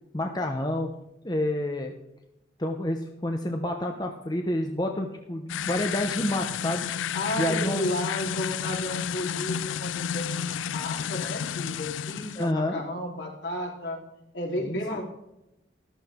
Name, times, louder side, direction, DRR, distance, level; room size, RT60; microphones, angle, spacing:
voice 1, 0.1-0.9 1.2-1.9 2.6-6.9 7.4-7.8 12.4-12.8 14.6-14.8, left 1 dB, 20° left, 3 dB, 0.9 m, -28 dB
sound 1, 5.5-12.5, left 8 dB, 85° left, 0.4 m, -31 dB
voice 2, 7.1-14.0 14.3-15.0, left 1 dB, 65° left, -1 dB, 3.7 m, -33 dB
14.0 x 12.5 x 3.7 m, 0.87 s
head